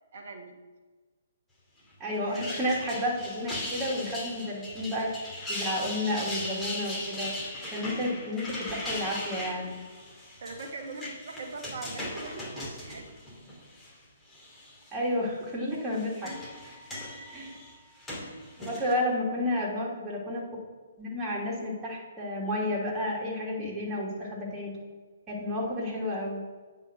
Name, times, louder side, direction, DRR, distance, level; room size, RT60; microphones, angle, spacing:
voice 1, 0.1-0.6 2.2-2.5 10.4-13.1 17.3-17.6 19.0-19.1, right 3 dB, 55° right, 3 dB, 1.6 m, -41 dB
voice 2, 2.0-7.3 7.7-9.8 14.9-16.3 17.3-17.5 18.6-20.4 21.0-24.7 25.3-26.4, left 1 dB, 20° right, -4 dB, 3.0 m, -31 dB
sound 1, 2.1-13.9 14.3-14.9 15.7-18.9, left 1 dB, 10° left, 2.7 m, -38 dB
9.1 x 5.6 x 6.3 m, 1.3 s
figure-of-eight pair, 130°, 0 cm